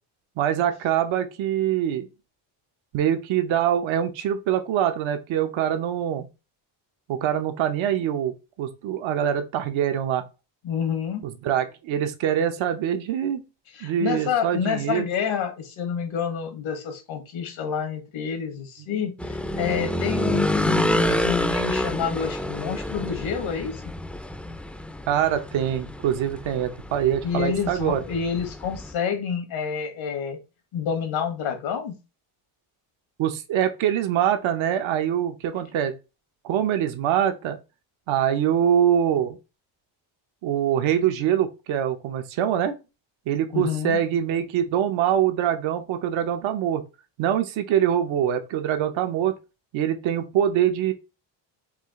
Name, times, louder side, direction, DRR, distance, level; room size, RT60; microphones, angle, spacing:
voice 1, 0.4-2.1 2.9-6.3 7.1-10.2 11.2-13.4 13.8-15.1 18.9-19.0 25.1-28.1 33.2-35.9 36.4-37.6 38.1-39.4 40.4-42.7 43.3-46.8 47.2-49.3 49.7-50.9, right 10 dB, 80° right, 0.9 m, -24 dB
voice 2, 10.6-11.2 13.7-23.9 27.2-30.4 30.7-32.0 43.5-44.0, left 7 dB, 80° left, 1.6 m, -28 dB
sound 1, 19.2-28.9, left 1 dB, 5° left, 0.4 m, -28 dB
4.9 x 2.5 x 3.6 m
cardioid pair, 85°, 47 cm